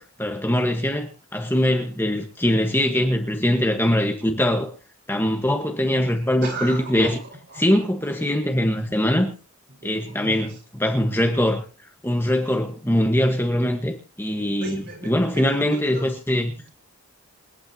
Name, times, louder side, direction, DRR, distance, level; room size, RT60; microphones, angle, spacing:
voice 1, 0.0-4.7 5.1-7.2 7.6-9.3 9.8-11.6 12.0-16.5, left 1 dB, 10° left, 1.4 m, -22 dB
voice 2, 6.4-8.2 9.7-10.6 14.6-16.1, right 2 dB, 50° right, 5.1 m, -37 dB
27.5 x 9.2 x 2.9 m
head